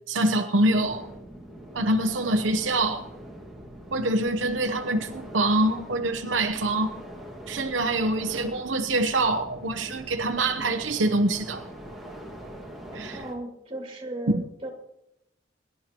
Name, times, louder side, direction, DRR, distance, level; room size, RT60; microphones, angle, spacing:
voice 1, 0.1-1.1 1.7-3.1 3.9-7.0 7.5-11.6 12.9-13.2 14.3-14.4, right 2 dB, 85° right, 0.9 m, -25 dB
sound 1, 0.7-13.3, right 1 dB, ahead, 1.9 m, -43 dB
voice 2, 12.9-14.7, right 1 dB, 30° right, 2.5 m, -36 dB
22.5 x 11.0 x 3.0 m
head